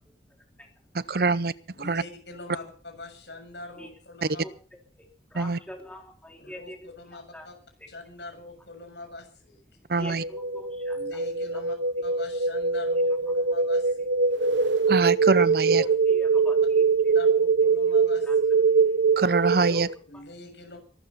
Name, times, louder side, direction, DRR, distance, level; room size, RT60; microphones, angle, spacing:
voice 1, 0.9-1.5 1.8-2.0 4.2-4.3 5.3-5.6 9.9-10.2 14.9-15.8 19.2-19.9, right 4 dB, 55° right, 16 dB, 0.6 m, -24 dB
voice 2, 1.7-4.4 6.4-7.5 7.9-9.9 10.9-11.8 12.0-14.1 17.1-18.5 20.1-20.8, left 2 dB, 75° left, 5 dB, 7.2 m, -43 dB
voice 3, 4.4-6.8 7.1-7.5 7.8-7.9 10.0-11.2 11.5-11.6 15.7-17.1 17.8-17.9 18.2-18.4 18.7-18.9 19.7-20.2, left 1 dB, 5° left, 1 dB, 3.3 m, -44 dB
sound 1, 10.0-19.9, right 5 dB, 90° right, 1.0 m, -23 dB
23.5 x 13.0 x 4.2 m, 0.41 s
head